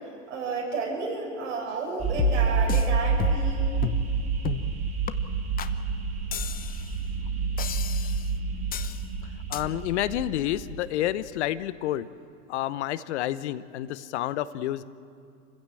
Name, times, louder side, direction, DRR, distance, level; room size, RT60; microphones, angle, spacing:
voice 1, 0.3-3.7, right 4 dB, 75° right, -1 dB, 7.4 m, -32 dB
sound 1, 2.0-11.2, right 5 dB, 20° right, 3.3 m, -28 dB
sound 2, 2.2-2.9 3.2-3.5 3.8-4.1 4.4-4.7 5.1-5.2 5.6-5.7 6.3-6.9 7.6-8.3 8.7-9.0 9.5-9.6, left 9 dB, 25° left, 0.9 m, -32 dB
voice 2, 9.5-12.1 12.5-14.8, left 13 dB, 60° left, 15 dB, 0.9 m, -29 dB
27.5 x 15.5 x 7.7 m, 2.3 s
hypercardioid pair, 95°, 38 cm